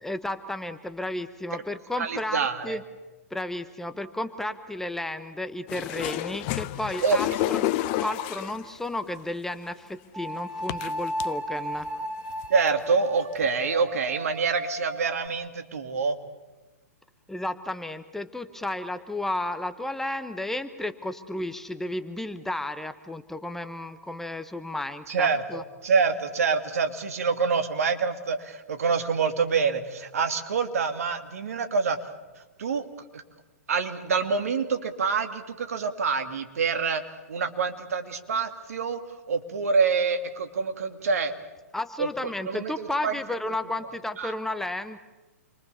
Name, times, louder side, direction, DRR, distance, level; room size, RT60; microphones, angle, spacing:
voice 1, 0.0-2.8 3.3-7.7 8.0-11.9 17.3-25.6 41.7-45.0, left 1 dB, 5° left, 9 dB, 1.1 m, -33 dB
voice 2, 2.0-2.8 7.0-7.2 12.5-16.2 25.1-32.0 32.6-32.8 33.1-33.2 33.7-37.0 37.3-39.0 39.3-41.3 42.0-42.1 42.5-43.1 44.2-44.3, right 5 dB, 70° right, 7 dB, 2.7 m, -26 dB
sound 1, 5.7-8.7 9.7-9.8 10.7-11.3 11.8-11.9 12.3-12.7 13.4-13.5, left 16 dB, 40° left, 0.9 m, -30 dB
sound 2, 7.4-8.1 10.1-15.3, equal, 15° right, 2.6 m, -35 dB
29.0 x 23.5 x 7.1 m, 1.2 s
hypercardioid pair, 120°, 8 cm